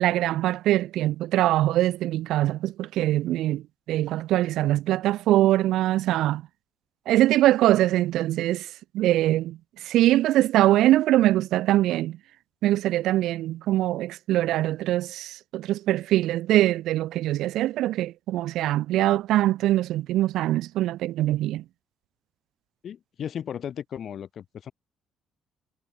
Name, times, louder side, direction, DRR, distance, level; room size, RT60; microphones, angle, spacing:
voice 1, 0.0-6.4 7.1-12.2 12.6-21.6, right 14 dB, 75° right, 0.4 m, -23 dB
voice 2, 22.8-24.7, left 9 dB, 40° left, 2.7 m, -35 dB
cardioid pair, 170°, 0 cm